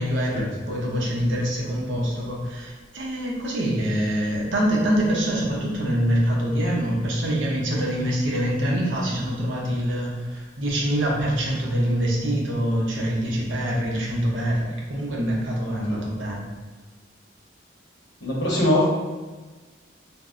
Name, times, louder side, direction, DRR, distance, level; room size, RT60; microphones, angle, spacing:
voice 1, 0.0-16.4, equal, 80° right, -3 dB, 0.7 m, -25 dB
voice 2, 18.2-18.9, left 1 dB, 70° left, -4 dB, 0.9 m, -22 dB
2.7 x 2.0 x 3.5 m, 1.3 s
head